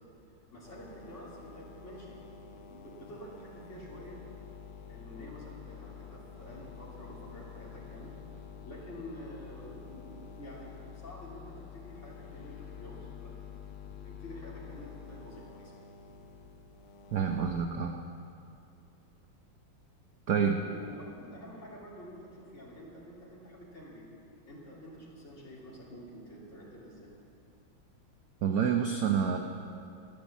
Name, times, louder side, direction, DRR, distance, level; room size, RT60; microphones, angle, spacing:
voice 1, 0.5-4.2 4.9-8.1 8.6-13.3 13.8-15.7 20.6-24.1 24.4-27.1, equal, 35° left, -5 dB, 3.1 m, -48 dB
sound 1, 0.6-17.7, left 7 dB, 80° left, 1.8 m, -48 dB
voice 2, 17.1-17.9 20.3-20.6 28.4-29.4, right 7 dB, 60° right, 4 dB, 0.9 m, -28 dB
14.0 x 10.5 x 7.2 m, 2.6 s
omnidirectional pair, 2.3 m